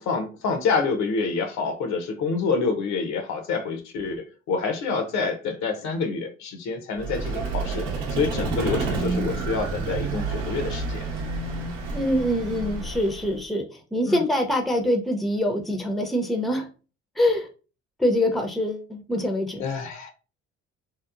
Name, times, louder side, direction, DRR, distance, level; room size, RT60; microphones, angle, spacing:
voice 1, 0.0-11.0 14.1-14.2 19.6-20.1, left 4 dB, 65° left, 0.7 m, -27 dB
Vehicle, 7.0-13.4, right 3 dB, 85° right, 0.8 m, -29 dB
voice 2, 11.9-13.7 13.9-16.7 17.2-17.5 18.0-19.6, left 1 dB, ahead, 0.5 m, -24 dB
2.8 x 2.0 x 2.4 m
supercardioid pair, 70°, 30 cm